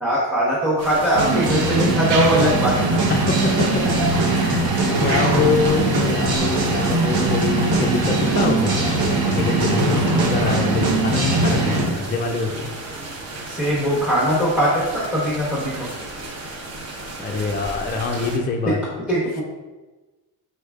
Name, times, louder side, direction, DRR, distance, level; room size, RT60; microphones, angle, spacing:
voice 1, 0.0-3.0 3.8-4.1 4.3-4.4 13.5-15.9 19.1-19.4, equal, ahead, -8 dB, 1.0 m, -21 dB
sound 1, 0.8-18.4, right 2 dB, 35° right, 0.8 m, -34 dB
sound 2, 1.2-11.9, right 2 dB, 55° right, 1.1 m, -20 dB
sound 3, 2.1-7.1, right 4 dB, 75° right, 0.9 m, -33 dB
voice 2, 3.1-3.8 4.4-8.9 9.3-12.7 17.2-18.8, left 4 dB, 25° left, 2 dB, 0.4 m, -25 dB
4.8 x 4.2 x 2.4 m, 1.2 s
cardioid pair, 125°, 43 cm